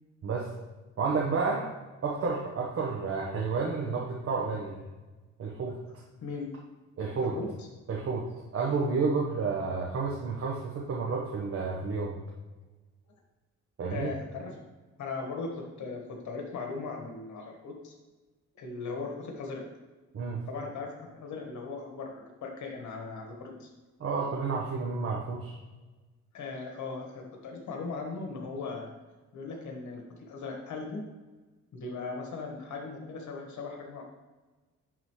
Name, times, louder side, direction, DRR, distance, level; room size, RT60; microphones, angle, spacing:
voice 1, 1.0-1.7 2.0-4.8 5.4-5.8 7.0-7.3 7.9-8.2 8.5-12.2 13.8-14.1 20.1-20.4 24.0-25.6, right 4 dB, 50° right, -2 dB, 1.2 m, -30 dB
voice 2, 7.2-7.7 13.9-14.6 15.0-17.9 18.5-19.6 20.5-23.7 26.3-28.9 29.3-31.0 31.7-34.0, left 4 dB, 70° left, 1 dB, 1.7 m, -38 dB
10.5 x 4.0 x 3.2 m, 1.2 s
cardioid pair, 90°, 30 cm